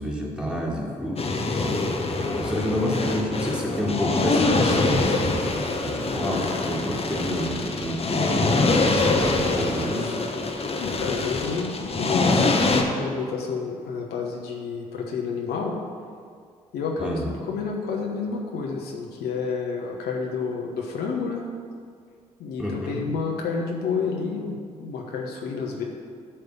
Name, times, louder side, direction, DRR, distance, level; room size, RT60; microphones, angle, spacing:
voice 1, 0.0-1.9 2.4-5.4 5.8-8.6 9.0-10.2 17.0-17.4 22.6-23.0, equal, 5° right, -3 dB, 2.2 m, -29 dB
sound 1, 1.2-12.8, left 3 dB, 35° left, 1.1 m, -24 dB
voice 2, 10.8-15.8 16.7-17.2 17.5-21.4 22.4-25.8, left 5 dB, 65° left, 0 dB, 1.0 m, -30 dB
10.0 x 3.4 x 7.0 m, 2.1 s
hypercardioid pair, 45°, 17 cm